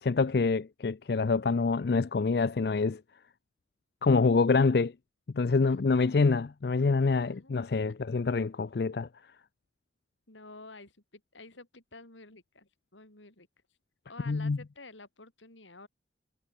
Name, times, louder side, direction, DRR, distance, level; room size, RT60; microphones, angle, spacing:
voice 1, 0.0-3.0 4.0-4.9 5.3-9.1 14.3-14.6, left 4 dB, 55° left, 0.4 m, -26 dB
voice 2, 7.0-7.9 10.3-13.5 14.1-15.9, left 3 dB, 85° left, 4.9 m, -51 dB
head